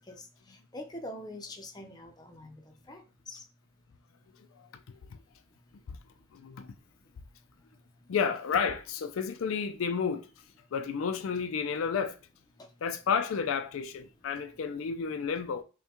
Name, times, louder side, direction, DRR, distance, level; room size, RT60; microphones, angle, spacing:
voice 1, 0.7-2.6 2.9-3.0 3.3-3.4, left 1 dB, 20° left, 0.6 m, -43 dB
voice 2, 4.6-5.0 5.9-6.0 6.3-6.7 8.1-10.3 10.7-12.2 12.8-15.6, left 6 dB, 70° left, 0.4 m, -31 dB
5.4 x 2.2 x 2.9 m
head